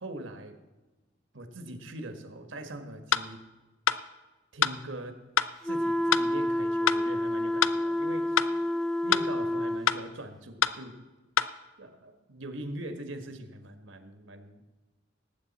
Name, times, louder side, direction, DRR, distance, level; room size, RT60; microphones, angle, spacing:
voice 1, 0.0-0.5 1.3-3.4 4.5-5.2 5.6-8.4 9.0-11.0 11.8-14.6, right 1 dB, 75° right, 7 dB, 1.5 m, -42 dB
sound 1, 3.1-3.3 3.9-4.0 4.6-4.8 5.4-5.5 6.1-6.3 6.9-7.0 7.6-7.8 8.4-8.5 9.1-9.3 9.9-10.0 10.6-10.8 11.4-11.5, left 8 dB, 80° left, 0.5 m, -25 dB
sound 2, 5.6-9.9, left 1 dB, ahead, 0.4 m, -29 dB
19.0 x 8.4 x 4.2 m, 1.2 s
head